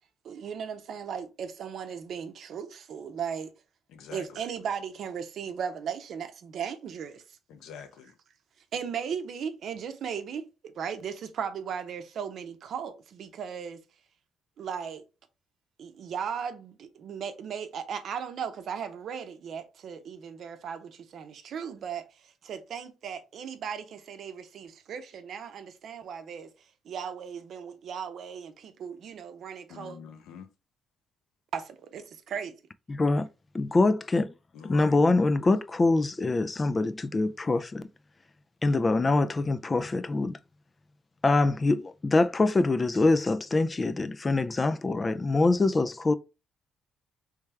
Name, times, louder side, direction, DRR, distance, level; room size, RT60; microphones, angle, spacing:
voice 1, 0.2-3.5 4.1-7.2 8.7-13.8 14.6-15.1 15.8-26.5 26.8-30.0 31.5-32.6, right 7 dB, 65° right, 0.7 m, -37 dB
voice 2, 3.9-4.4 7.5-8.1 29.7-30.5 34.5-35.0, left 7 dB, 85° left, 0.7 m, -45 dB
voice 3, 32.9-33.3 33.5-34.3 34.6-37.9 38.6-40.4 41.2-46.1, left 3 dB, 30° left, 0.4 m, -24 dB
3.4 x 3.3 x 3.3 m
cardioid pair, 90°, 0 cm